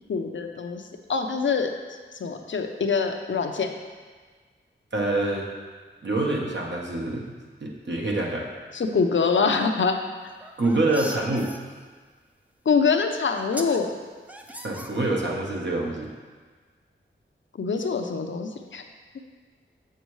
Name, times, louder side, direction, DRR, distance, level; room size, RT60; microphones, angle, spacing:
voice 1, 0.1-0.8 1.1-1.7 2.2-3.7 8.7-10.0 12.7-13.9 17.6-18.8, left 5 dB, 70° left, 5 dB, 0.6 m, -24 dB
voice 2, 4.9-5.5 6.0-8.5 10.6-11.6 14.6-16.1, right 2 dB, 60° right, -2 dB, 1.1 m, -26 dB
sound 1, 10.3-11.6 12.7-12.8 13.3-13.8 14.3-15.4, equal, 5° right, 0.5 m, -39 dB
7.1 x 6.6 x 3.2 m, 1.5 s
wide cardioid pair, 80°, 21 cm